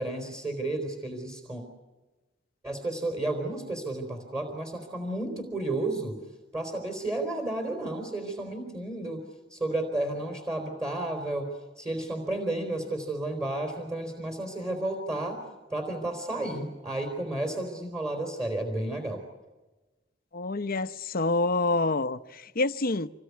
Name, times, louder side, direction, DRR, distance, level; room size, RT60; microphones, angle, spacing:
voice 1, 0.0-1.6 2.6-6.2 6.5-9.2 9.5-11.5 11.8-15.4 15.7-19.2, right 2 dB, 15° right, 3.8 m, -32 dB
voice 2, 20.3-23.1, left 2 dB, 50° left, 0.9 m, -27 dB
27.0 x 20.0 x 9.5 m
head